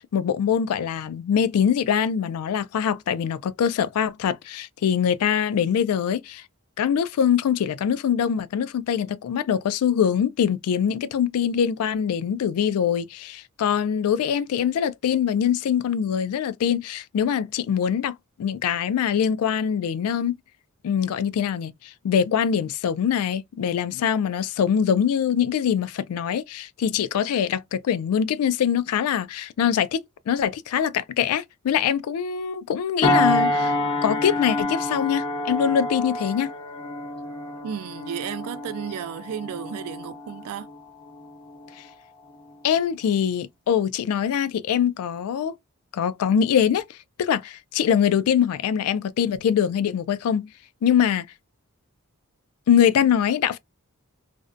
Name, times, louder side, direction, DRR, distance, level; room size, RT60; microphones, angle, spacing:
voice 1, 0.0-6.4 6.8-20.4 20.8-33.8 34.0-36.5 42.6-45.5 45.9-50.5 50.8-51.3 52.7-53.6, left 8 dB, 75° left, 0.3 m, -23 dB
sound 1, 33.0-41.9 42.3-42.6, left 1 dB, 25° left, 0.9 m, -28 dB
voice 2, 37.6-40.7, right 9 dB, 90° right, 0.3 m, -33 dB
2.5 x 2.1 x 2.4 m
head